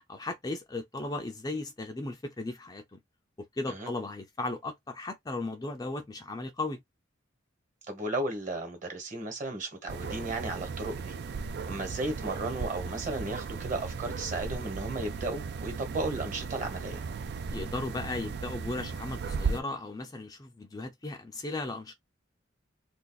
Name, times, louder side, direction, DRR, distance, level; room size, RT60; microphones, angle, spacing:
voice 1, 0.1-3.0 3.5-6.8 17.5-21.9, left 2 dB, 20° left, 0.4 m, -36 dB
voice 2, 7.9-11.2 11.6-17.0, right 2 dB, 40° right, 1.3 m, -34 dB
sound 1, 9.9-19.6, right 5 dB, 55° right, 0.4 m, -36 dB
2.5 x 2.4 x 3.9 m
head